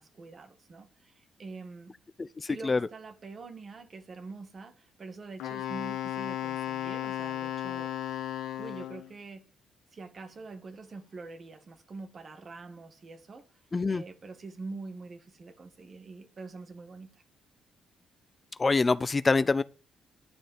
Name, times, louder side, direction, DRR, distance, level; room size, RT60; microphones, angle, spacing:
voice 1, 0.0-2.0 2.5-8.3 8.6-9.4 9.9-13.5 13.9-17.2, right 3 dB, 45° right, 1.9 m, -45 dB
voice 2, 2.2-2.8 13.7-14.0 18.6-19.6, left 3 dB, 30° left, 0.5 m, -25 dB
Wind instrument woodwind instrument, 5.4-9.1, left 12 dB, 80° left, 1.6 m, -34 dB
11.0 x 5.0 x 8.1 m
hypercardioid pair, 50°, 0 cm